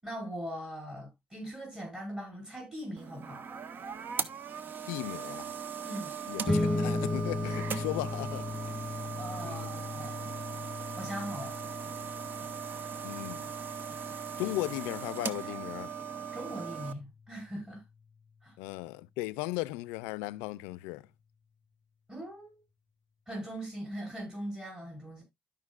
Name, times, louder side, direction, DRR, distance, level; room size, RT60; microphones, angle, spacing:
voice 1, 0.0-3.4 5.8-6.2 9.2-10.2 11.0-11.5 16.3-17.9 18.4-18.6 22.1-22.6 23.3-25.2, equal, 20° right, 5.4 m, -40 dB
sound 1, 3.0-16.9, right 7 dB, 55° right, 0.8 m, -39 dB
voice 2, 4.9-5.5 6.3-8.9 9.4-9.7 13.0-13.5 14.4-15.9 18.6-21.1, left 19 dB, 90° left, 0.4 m, -37 dB
sound 2, 6.5-17.2, left 2 dB, ahead, 2.8 m, -37 dB
13.0 x 5.2 x 2.4 m
supercardioid pair, 65°, 4 cm